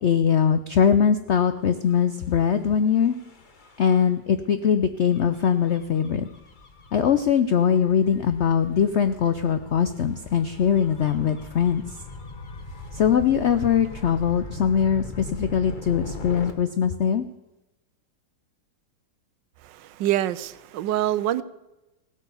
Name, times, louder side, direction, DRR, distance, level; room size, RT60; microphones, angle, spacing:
voice 1, 0.0-3.2 3.8-6.3 6.9-11.8 12.9-17.2, left 8 dB, 75° left, 0.6 m, -21 dB
Gull seagull / Waves surf / Siren, 1.8-16.5, left 3 dB, 30° left, 1.1 m, -41 dB
voice 2, 19.6-21.4, right 13 dB, 85° right, 1.3 m, -26 dB
16.5 x 8.4 x 6.9 m
omnidirectional pair, 1.9 m